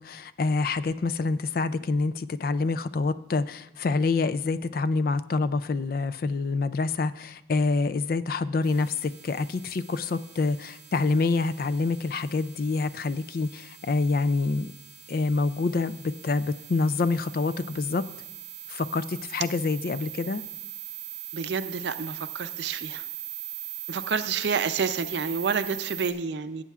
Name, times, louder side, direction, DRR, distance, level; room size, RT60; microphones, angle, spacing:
voice 1, 0.0-14.7 15.1-18.0 18.7-20.4, left 3 dB, 50° left, 14 dB, 0.3 m, -27 dB
sound 1, 8.6-26.1, right 11 dB, 25° right, 2.8 m, -41 dB
voice 2, 21.3-23.0 23.9-26.6, right 5 dB, 70° right, 11 dB, 0.5 m, -29 dB
17.0 x 8.3 x 2.4 m, 0.94 s
head